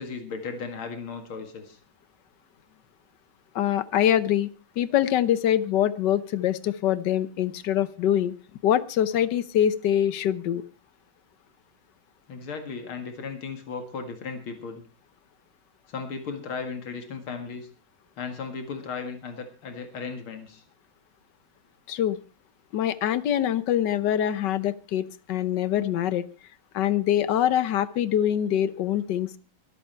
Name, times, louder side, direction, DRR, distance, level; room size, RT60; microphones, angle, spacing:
voice 1, 0.0-1.8 12.3-14.8 15.9-17.7 18.2-20.6, left 5 dB, 90° left, 6 dB, 2.8 m, -36 dB
voice 2, 3.5-4.5 4.8-8.3 8.6-10.6 21.9-22.2 22.7-26.2 26.7-29.4, left 10 dB, 65° left, 15 dB, 1.3 m, -24 dB
24.0 x 8.3 x 4.5 m, 0.34 s
omnidirectional pair, 2.2 m